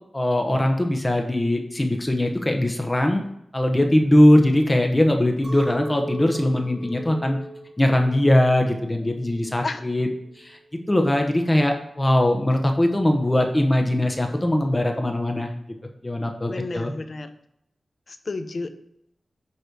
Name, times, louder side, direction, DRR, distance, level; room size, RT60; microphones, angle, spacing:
voice 1, 0.1-3.2 3.5-7.4 7.8-10.1 10.4-10.6 10.9-15.5 16.0-16.9, left 1 dB, 25° left, 3 dB, 1.0 m, -20 dB
Chink clink, 5.4-10.6, right 1 dB, 25° right, 2.7 m, -38 dB
voice 2, 16.5-17.3 18.1-18.7, left 3 dB, 60° left, 9 dB, 0.7 m, -31 dB
8.2 x 3.2 x 6.0 m, 0.77 s
cardioid pair, 50°, 0 cm